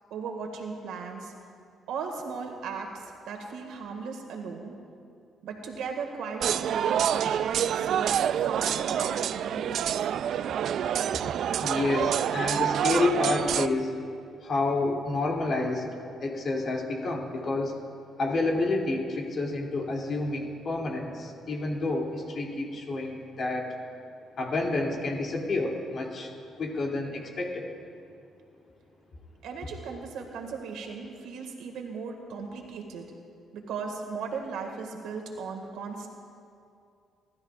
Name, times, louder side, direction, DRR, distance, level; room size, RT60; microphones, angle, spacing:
voice 1, 0.1-1.3 1.9-4.7 5.4-10.1 29.4-33.1 33.5-36.1, right 5 dB, 85° right, 3 dB, 1.8 m, -37 dB
sound 1, 6.4-13.7, right 9 dB, 70° right, 0.3 m, -27 dB
voice 2, 11.6-13.9 14.4-15.9 16.2-17.7 18.2-23.7 24.4-26.3 26.6-27.7, left 2 dB, 55° left, -1 dB, 2.7 m, -29 dB
29.5 x 12.5 x 2.4 m, 2.5 s
cardioid pair, 90°, 0 cm